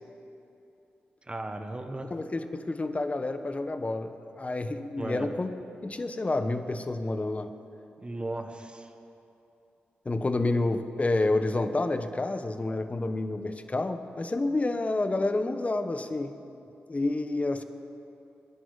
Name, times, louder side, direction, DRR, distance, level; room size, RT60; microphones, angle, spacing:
voice 1, 1.3-2.1 5.0-5.3 8.0-8.9, right 2 dB, 25° right, 5 dB, 1.4 m, -36 dB
voice 2, 2.1-5.5 5.8-7.5 10.0-16.4 16.9-17.6, left 2 dB, 35° left, 9 dB, 1.2 m, -29 dB
25.0 x 11.0 x 4.1 m, 2.8 s
supercardioid pair, 40°, 4 cm